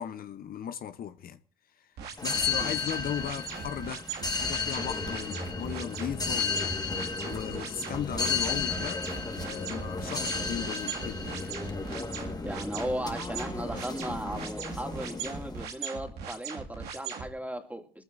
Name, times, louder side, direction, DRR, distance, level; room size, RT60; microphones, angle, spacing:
voice 1, 0.0-1.4 2.2-6.7 7.2-9.0 9.4-11.6, left 9 dB, 65° left, 0.9 m, -37 dB
sound 1, 2.0-17.3, right 7 dB, 85° right, 2.2 m, -40 dB
sound 2, 2.2-15.7, left 4 dB, 25° left, 1.6 m, -33 dB
voice 2, 12.4-18.0, right 1 dB, 10° right, 2.4 m, -36 dB
22.5 x 14.5 x 2.6 m
supercardioid pair, 70°, 16 cm